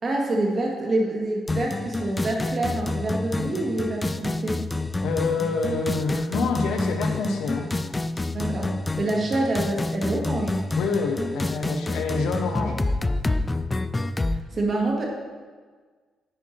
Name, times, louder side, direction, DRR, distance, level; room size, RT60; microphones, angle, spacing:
voice 1, 0.0-4.7 8.3-10.6 10.8-11.1 14.3-15.1, right 2 dB, 40° right, 0 dB, 1.7 m, -27 dB
sound 1, 1.5-14.4, left 2 dB, 20° left, 0.3 m, -28 dB
voice 2, 5.0-7.7 10.8-12.8, left 4 dB, 80° left, 3 dB, 1.0 m, -27 dB
10.0 x 4.5 x 4.5 m, 1.5 s
cardioid pair, 90°, 0 cm